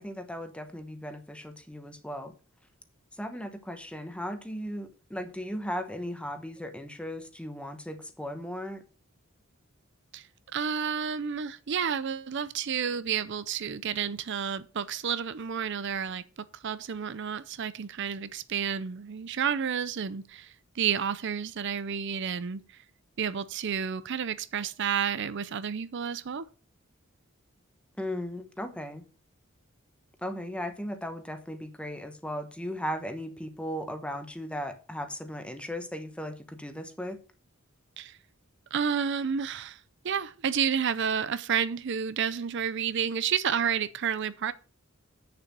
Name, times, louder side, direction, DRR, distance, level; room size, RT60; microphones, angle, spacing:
voice 1, 0.0-2.3 3.2-8.8 28.0-29.0 30.2-37.2, equal, 5° left, 1.0 m, -37 dB
voice 2, 10.5-22.8 23.2-26.5 38.0-38.2 38.7-44.5, right 7 dB, 55° right, 0.5 m, -30 dB
8.6 x 6.9 x 5.9 m
head